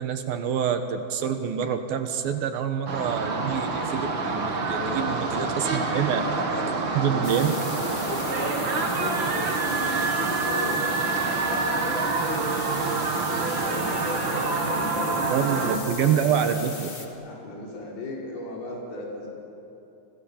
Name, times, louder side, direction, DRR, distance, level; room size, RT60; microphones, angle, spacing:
voice 1, 0.0-6.2 6.5-6.6 6.9-7.5 15.3-16.9, right 8 dB, 70° right, 7 dB, 2.8 m, -26 dB
sound 1, 2.9-15.8, right 4 dB, 40° right, 1.9 m, -27 dB
voice 2, 4.7-5.3 5.8-16.5 17.2-19.3, left 2 dB, 65° left, -3 dB, 6.7 m, -35 dB
sound 2, 7.2-17.1, left 3 dB, 25° left, 1.3 m, -38 dB
29.5 x 25.5 x 7.2 m, 3.0 s
omnidirectional pair, 4.7 m